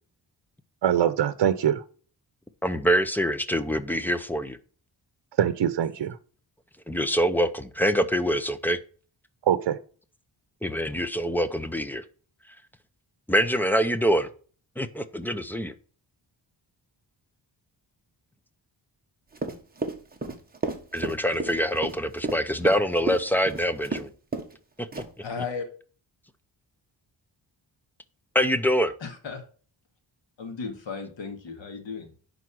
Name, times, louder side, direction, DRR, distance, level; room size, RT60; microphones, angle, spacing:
voice 1, 0.8-1.8 5.4-6.1 9.5-9.8, right 9 dB, 70° right, 0.8 m, -23 dB
voice 2, 2.6-4.6 6.9-8.8 10.6-12.0 13.3-14.3 14.8-15.7 20.9-24.1 28.3-28.9, equal, 5° left, 0.5 m, -25 dB
Run, 19.3-24.1 24.3-24.6 24.9-25.3, right 3 dB, 20° right, 1.2 m, -32 dB
voice 3, 25.2-25.7 29.0-29.4 30.4-32.2, left 5 dB, 85° left, 2.1 m, -35 dB
11.0 x 4.1 x 6.1 m
wide cardioid pair, 170°, 43 cm